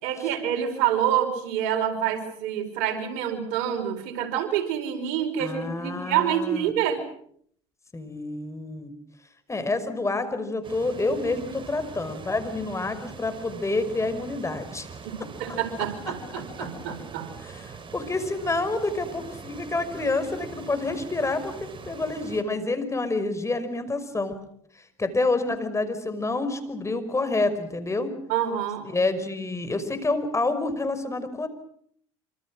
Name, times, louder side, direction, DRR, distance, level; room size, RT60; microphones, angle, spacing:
voice 1, 0.0-7.1 15.0-17.3 28.3-29.0, right 10 dB, 75° right, 6 dB, 5.1 m, -27 dB
voice 2, 5.4-6.7 7.9-8.9 9.5-14.9 16.3-16.7 17.5-24.4 25.0-28.1 28.8-31.5, left 2 dB, 20° left, 10 dB, 5.5 m, -28 dB
sound 1, 10.6-22.4, right 5 dB, 35° right, 3.6 m, -42 dB
26.5 x 26.5 x 6.4 m, 0.65 s
supercardioid pair, 75°, 14 cm